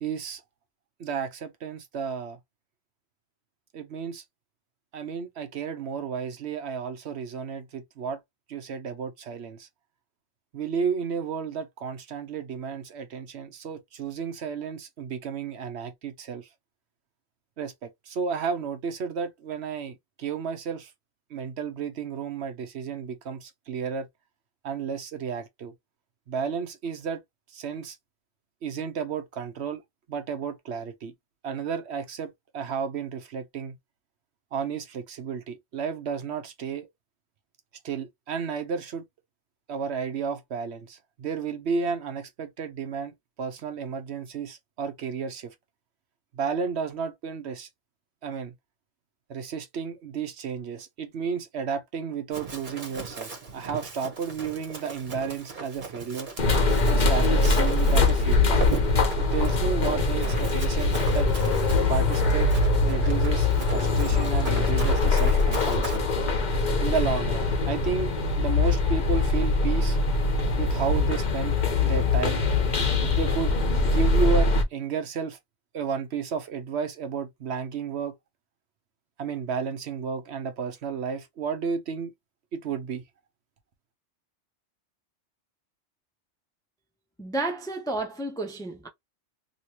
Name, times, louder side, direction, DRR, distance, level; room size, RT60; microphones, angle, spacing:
voice 1, 0.0-0.4 1.0-2.4 3.7-4.2 4.9-8.2 8.5-9.7 10.5-16.5 17.6-20.9 21.3-24.1 24.6-25.7 26.3-27.2 27.5-28.0 28.6-29.8 30.1-31.1 31.4-33.8 34.5-36.9 37.8-39.0 39.7-45.5 46.3-47.7 48.2-48.5 49.3-56.3 56.9-58.6 59.2-61.3 61.9-62.5 62.8-66.0 66.8-68.1 68.4-70.0 70.6-71.6 71.8-72.4 73.0-73.5 73.8-75.4 75.7-78.1 79.2-82.1 82.5-83.0, right 6 dB, 65° right, 1.0 m, -32 dB
Run, 52.3-66.0, right 4 dB, 45° right, 1.2 m, -38 dB
sound 1, 56.4-74.6, left 3 dB, 45° left, 0.9 m, -23 dB
voice 2, 87.2-88.9, right 2 dB, 5° left, 0.5 m, -31 dB
3.0 x 2.9 x 2.8 m
omnidirectional pair, 1.2 m